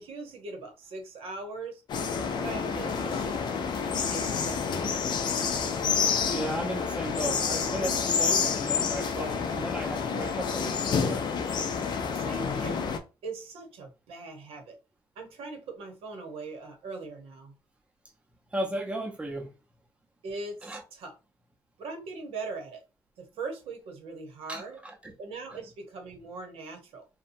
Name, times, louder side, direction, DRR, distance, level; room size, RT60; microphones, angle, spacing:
voice 1, 0.0-1.8 2.4-3.5 3.9-5.0 12.1-12.8 13.2-14.7 15.2-17.5 20.2-21.1 21.8-22.8 23.2-24.8 25.2-27.1, right 3 dB, 80° right, 1.0 m, -40 dB
sound 1, 1.9-13.0, left 6 dB, 50° left, 0.5 m, -29 dB
voice 2, 6.3-11.3 18.5-19.5 20.6-20.8 24.5-25.1, right 1 dB, 10° right, 0.6 m, -35 dB
2.9 x 2.2 x 2.6 m
cardioid pair, 125°, 10 cm